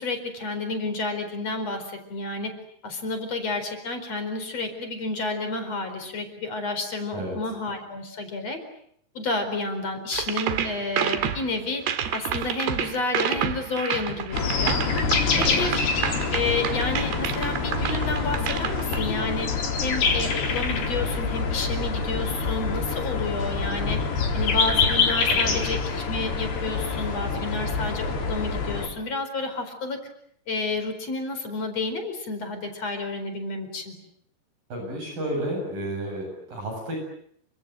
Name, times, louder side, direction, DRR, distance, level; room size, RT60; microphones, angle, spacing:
voice 1, 0.0-2.5 2.8-8.6 9.2-11.8 12.1-14.8 15.2-15.7 16.3-19.5 19.8-24.0 24.3-30.0 30.5-34.0, left 3 dB, 40° left, 7 dB, 5.3 m, -30 dB
sound 1, 10.1-19.0, right 9 dB, 80° right, 3.9 m, -29 dB
sound 2, 14.3-28.9, left 4 dB, 80° left, 6.0 m, -26 dB
voice 2, 25.3-25.6 34.7-37.0, right 1 dB, 55° right, 2 dB, 9.5 m, -31 dB
29.5 x 25.5 x 7.7 m, 0.68 s
omnidirectional pair, 4.6 m